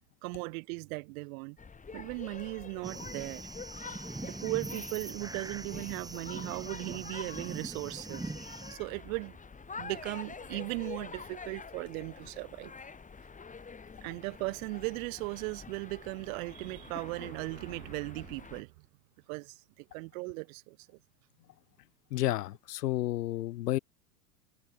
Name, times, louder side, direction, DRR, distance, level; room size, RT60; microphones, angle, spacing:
voice 1, 0.2-1.6 1.9-3.5 4.2-8.3 8.7-9.4 9.8-12.7 14.0-18.7 19.3-21.0, right 29 dB, 60° right, 2.5 m, -38 dB
sound 1, 1.6-18.6, left 5 dB, 15° left, 2.4 m, -47 dB
sound 2, 2.8-8.8, right 2 dB, 10° right, 1.8 m, -42 dB
voice 2, 22.1-23.8, left 15 dB, 85° left, 0.6 m, -31 dB
hypercardioid pair, 90°, 46 cm